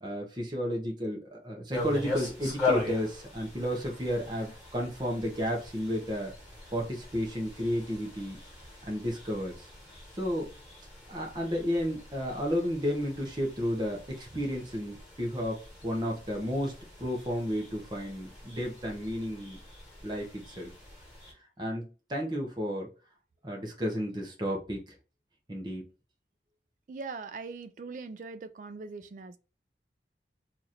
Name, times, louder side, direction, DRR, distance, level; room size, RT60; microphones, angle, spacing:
voice 1, 0.0-6.3 6.7-8.4 8.8-9.7 10.1-10.5 11.1-16.7 17.0-19.6 20.0-20.7 21.6-22.9 23.4-24.8 25.5-25.8, equal, 25° right, 0.8 m, -32 dB
sound 1, 1.7-21.3, left 3 dB, 5° right, 1.7 m, -40 dB
voice 2, 26.9-29.4, right 4 dB, 45° right, 0.3 m, -41 dB
2.9 x 2.5 x 4.1 m
head